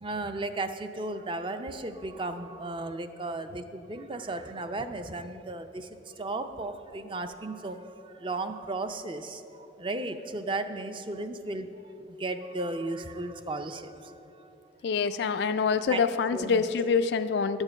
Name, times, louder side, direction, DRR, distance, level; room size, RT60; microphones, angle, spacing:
voice 1, 0.0-9.4 9.8-14.5 15.9-16.0 16.3-16.6, right 2 dB, 25° right, 9 dB, 0.5 m, -35 dB
voice 2, 14.8-17.6, left 5 dB, 65° left, 10 dB, 0.3 m, -26 dB
11.5 x 7.3 x 6.4 m, 3.0 s
head